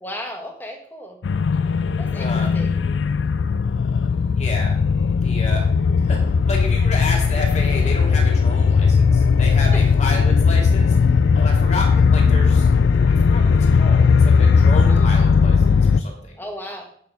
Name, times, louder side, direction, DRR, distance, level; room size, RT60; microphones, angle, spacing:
voice 1, 0.0-1.2 2.0-2.8 9.7-9.8 14.9-15.1 16.4-16.8, equal, 10° left, 2 dB, 1.4 m, -35 dB
sound 1, 1.2-16.0, left 5 dB, 85° left, 0.4 m, -17 dB
voice 2, 2.2-2.6 4.4-4.8 5.2-5.6 6.0-6.2 6.5-11.0 11.4-16.3, left 2 dB, 40° left, 0 dB, 2.6 m, -31 dB
8.5 x 6.7 x 5.0 m, 0.62 s
head